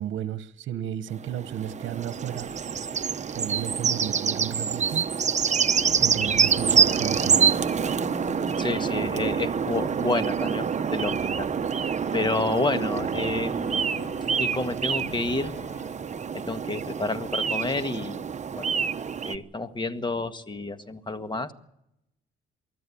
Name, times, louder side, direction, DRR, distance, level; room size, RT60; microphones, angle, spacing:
voice 1, 0.0-2.5 3.3-5.1 6.0-7.4, right 10 dB, 70° right, 13 dB, 1.2 m, -33 dB
sound 1, 1.1-19.4, right 6 dB, 35° right, 0.9 m, -26 dB
sound 2, 5.7-16.0, left 5 dB, 90° left, 7.4 m, -42 dB
voice 2, 8.6-11.5 12.1-13.8 14.4-15.5 16.3-18.2 18.6-18.7 19.3-21.5, left 3 dB, 25° left, 9 dB, 1.7 m, -29 dB
24.0 x 14.5 x 8.6 m, 0.82 s
cardioid pair, 90°, 20 cm